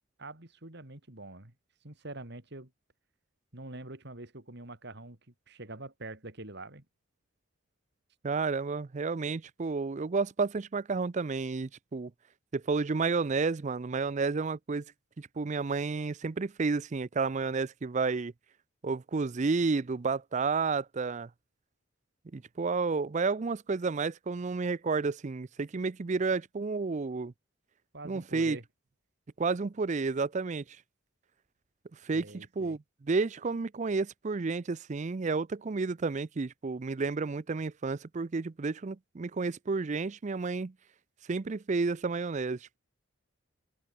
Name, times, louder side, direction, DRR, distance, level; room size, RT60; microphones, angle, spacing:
voice 1, 0.2-1.5 1.8-2.7 3.5-5.2 5.5-6.8 27.9-28.6 32.1-32.8, right 2 dB, 55° right, 3.0 m, -45 dB
voice 2, 8.2-12.1 12.5-14.8 15.2-18.3 18.8-21.3 22.3-27.3 28.0-28.6 29.4-30.6 32.0-40.7 41.3-42.8, right 4 dB, 35° right, 0.4 m, -31 dB
open air
head